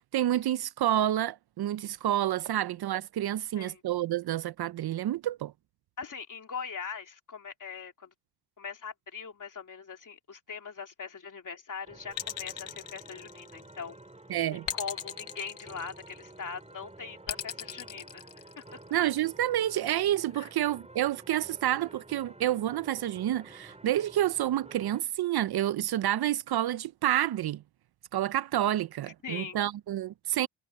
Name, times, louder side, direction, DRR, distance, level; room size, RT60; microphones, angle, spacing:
voice 1, 0.0-5.5 14.3-14.7 18.9-27.6 28.1-30.5, right 12 dB, 60° right, 0.5 m, -29 dB
voice 2, 3.4-3.8 6.0-8.1 8.6-14.0 14.3-14.4 14.7-18.3 18.6-18.8 20.3-20.5 29.2-29.6, left 5 dB, 45° left, 3.1 m, -41 dB
sound 1, 11.8-25.0, right 2 dB, 15° right, 5.7 m, -51 dB
sound 2, 12.1-13.8 14.7-16.3 17.3-18.9, left 10 dB, 90° left, 1.5 m, -38 dB
wide cardioid pair, 125°, 43 cm